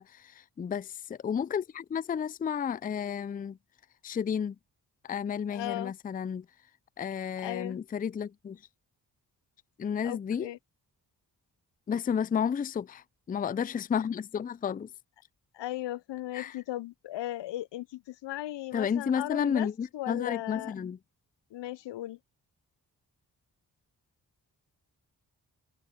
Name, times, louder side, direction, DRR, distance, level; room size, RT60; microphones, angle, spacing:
voice 1, 0.0-3.6 4.0-4.6 5.0-6.5 7.0-8.6 9.8-10.5 11.9-14.9 16.3-16.5 18.7-21.0, left 7 dB, 20° left, 0.3 m, -32 dB
voice 2, 5.5-5.9 7.4-7.8 10.0-10.6 15.5-19.7 19.9-20.7 21.5-22.2, left 14 dB, 75° left, 0.6 m, -37 dB
cardioid pair, 45°, 43 cm